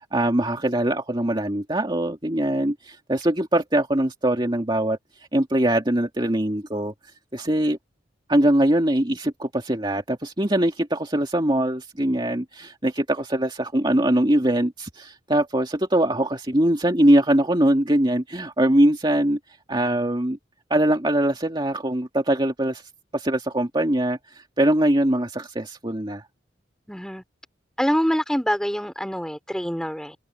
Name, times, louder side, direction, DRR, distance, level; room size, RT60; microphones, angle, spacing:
voice 1, 0.1-5.0 5.3-6.9 7.3-7.8 8.3-19.4 19.7-20.4 20.7-22.8 23.1-26.2, right 1 dB, 25° right, 2.3 m, -22 dB
voice 2, 26.9-27.2 27.8-30.1, equal, 5° left, 4.3 m, -25 dB
head